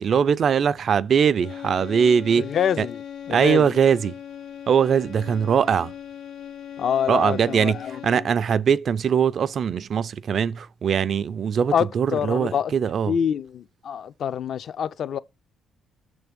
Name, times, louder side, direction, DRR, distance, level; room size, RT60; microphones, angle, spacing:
voice 1, 0.0-2.5 2.8-2.9 3.3-4.1 4.7-5.9 7.1-13.1, right 7 dB, 40° right, 0.3 m, -21 dB
sound 1, 1.3-8.5, left 9 dB, 70° left, 1.5 m, -39 dB
voice 2, 2.4-3.0 3.3-3.7 6.8-8.0 11.7-12.7 13.1-15.2, left 8 dB, 50° left, 0.4 m, -26 dB
6.7 x 3.4 x 5.1 m
cardioid pair, 140°, 0 cm